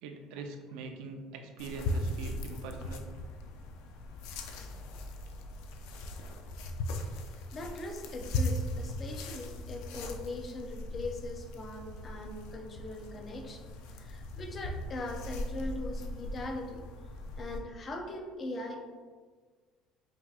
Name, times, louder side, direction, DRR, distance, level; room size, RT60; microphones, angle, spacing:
voice 1, 0.0-3.1, right 3 dB, 75° right, 4 dB, 0.5 m, -42 dB
sound 1, 1.6-17.6, left 1 dB, 80° left, 0.4 m, -38 dB
voice 2, 7.3-13.6 13.9-16.9 17.4-19.1, left 2 dB, 25° left, 3 dB, 0.4 m, -40 dB
5.5 x 2.7 x 2.4 m, 1.5 s
cardioid pair, 155°, 0 cm